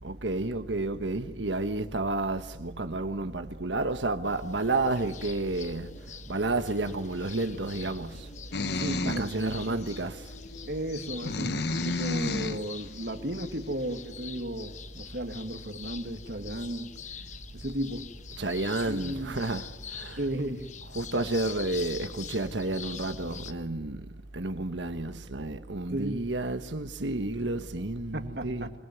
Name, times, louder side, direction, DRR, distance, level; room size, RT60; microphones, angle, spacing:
voice 1, 0.0-8.3 8.7-10.3 18.3-20.3 20.8-28.7, right 2 dB, 85° right, 1.4 m, -31 dB
sound 1, 4.2-23.5, left 6 dB, 40° left, 1.1 m, -45 dB
sound 2, 8.5-9.3 9.9-10.0 10.9-12.6, left 2 dB, 65° left, 1.1 m, -31 dB
voice 2, 8.7-9.8 10.7-16.9 17.5-18.1 18.8-19.3 20.2-20.7 25.9-26.2 28.1-28.7, right 1 dB, 65° right, 2.1 m, -34 dB
27.0 x 20.5 x 9.4 m
head